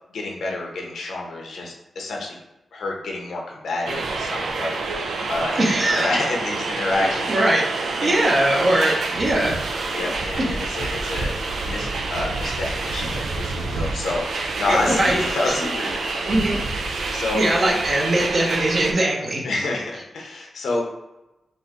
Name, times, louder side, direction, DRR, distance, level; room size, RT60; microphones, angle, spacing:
voice 1, 0.1-2.4 2.7-7.5 8.0-8.2 9.9-17.4 19.4-20.8, left 2 dB, 90° left, 0 dB, 0.9 m, -29 dB
sound 1, 3.8-18.9, right 3 dB, 90° right, 0.5 m, -27 dB
voice 2, 5.6-6.1 7.3-9.5 10.4-10.5 14.7-15.2 15.5-15.6 16.2-16.6 17.0-19.4, right 1 dB, 45° right, -2 dB, 1.0 m, -21 dB
4.1 x 2.7 x 3.7 m, 0.97 s
wide cardioid pair, 125°, 0 cm